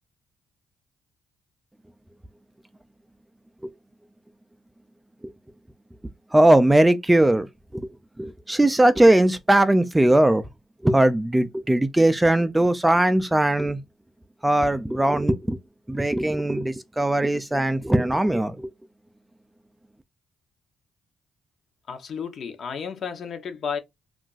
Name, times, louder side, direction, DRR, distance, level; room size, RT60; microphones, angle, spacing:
voice 1, 6.3-7.5 7.7-10.4 10.8-13.8 14.4-15.6 15.9-18.7, right 1 dB, 10° right, 0.3 m, -20 dB
voice 2, 21.9-23.8, left 6 dB, 60° left, 0.7 m, -32 dB
2.4 x 2.2 x 3.8 m
cardioid pair, 90°, 0 cm